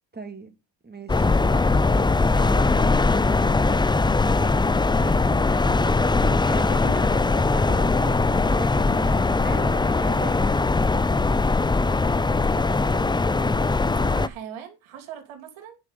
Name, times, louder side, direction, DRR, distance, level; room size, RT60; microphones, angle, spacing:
voice 1, 0.1-0.5 0.8-1.3 2.3-3.3 5.0-10.5, right 2 dB, 20° right, 2.7 m, -38 dB
sound 1, 1.1-14.3, left 3 dB, 10° left, 0.5 m, -21 dB
voice 2, 12.3-13.1 13.4-15.8, right 9 dB, 85° right, 3.0 m, -41 dB
9.9 x 5.1 x 6.5 m
cardioid pair, 85°, 47 cm